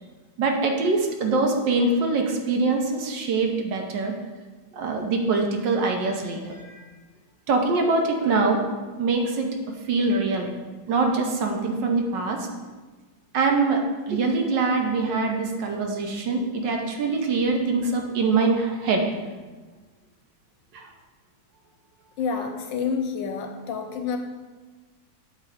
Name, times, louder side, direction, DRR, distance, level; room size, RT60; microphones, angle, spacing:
voice 1, 0.4-4.1 4.7-6.8 7.5-8.6 9.0-9.5 9.9-10.5 10.9-12.5 13.3-13.8 14.1-19.1 20.7-20.9, right 3 dB, 65° right, 2 dB, 1.4 m, -23 dB
voice 2, 22.2-24.2, left 6 dB, 70° left, 5 dB, 1.2 m, -28 dB
8.6 x 3.3 x 6.3 m, 1.3 s
omnidirectional pair, 2.2 m